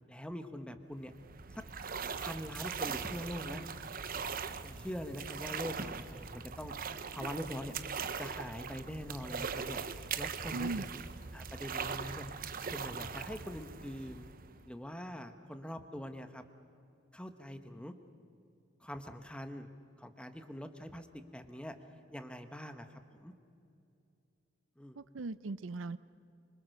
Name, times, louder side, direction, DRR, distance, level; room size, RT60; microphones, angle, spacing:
voice 1, 0.1-1.1 1.5-1.6 2.2-3.7 4.6-6.8 7.1-7.8 8.2-11.0 11.3-12.3 12.6-14.3 14.7-16.4 17.1-17.9 18.8-19.7 20.0-21.1 21.3-21.7 22.1-23.3 24.8-25.0, equal, 5° left, 8 dB, 1.3 m, -43 dB
sound 1, 1.0-14.7, right 6 dB, 45° right, 0.9 m, -41 dB
voice 2, 10.5-10.8 25.0-26.0, right 3 dB, 70° right, 15 dB, 0.6 m, -38 dB
25.5 x 25.0 x 6.7 m, 2.6 s
head